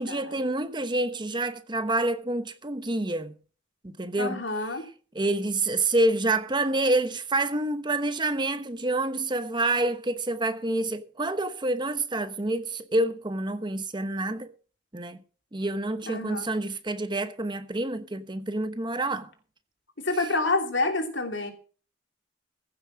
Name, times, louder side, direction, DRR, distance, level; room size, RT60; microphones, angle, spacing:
voice 1, 0.0-3.3 3.8-4.4 5.1-14.5 14.9-15.2 15.5-19.3, right 2 dB, 25° right, 1.0 m, -27 dB
voice 2, 4.2-4.9 16.1-16.4 20.0-21.5, left 2 dB, 75° left, 3.0 m, -28 dB
15.0 x 7.3 x 6.2 m
head